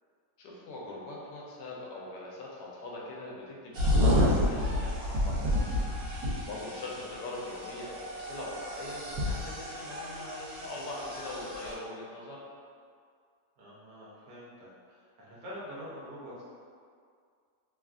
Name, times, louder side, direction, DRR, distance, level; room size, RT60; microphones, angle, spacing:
voice 1, 0.4-5.9 6.5-12.4, left 2 dB, 85° left, -4 dB, 1.2 m, -42 dB
sound 1, 3.8-11.7, left 1 dB, 85° right, 1.2 m, -30 dB
voice 2, 13.6-16.4, equal, 65° right, -8 dB, 1.1 m, -46 dB
3.1 x 2.4 x 2.4 m, 2.1 s
omnidirectional pair, 1.8 m